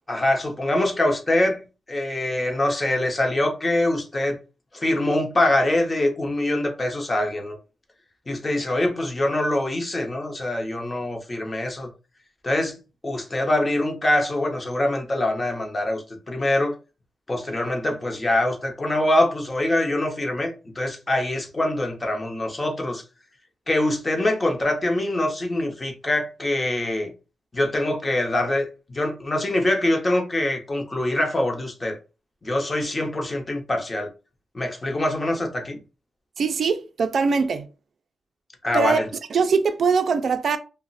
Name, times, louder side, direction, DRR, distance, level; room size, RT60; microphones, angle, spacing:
voice 1, 0.1-1.6 1.9-4.4 4.7-7.6 8.3-11.9 12.4-12.8 13.0-16.8 17.3-23.0 23.7-27.1 27.5-32.0 32.4-34.1 34.5-35.8 38.6-39.0, left 1 dB, 25° left, 0.8 m, -24 dB
voice 2, 36.4-37.7 38.7-39.0 39.3-40.6, right 5 dB, 60° right, 0.4 m, -22 dB
2.4 x 2.1 x 3.9 m
cardioid pair, 95°, 0 cm